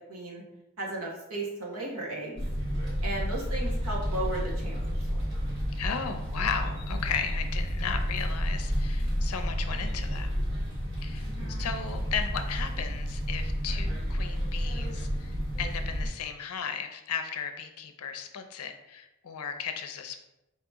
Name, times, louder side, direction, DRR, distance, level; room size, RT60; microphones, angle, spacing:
voice 1, 0.1-0.4 0.8-2.4 3.0-4.8 11.2-11.5, right 2 dB, 75° right, -2 dB, 1.2 m, -35 dB
sound 1, 2.4-16.1, equal, 55° right, 1.2 m, -31 dB
voice 2, 5.8-10.3 11.0-20.2, left 7 dB, 80° left, 7 dB, 0.5 m, -35 dB
4.6 x 2.9 x 3.5 m, 0.93 s
head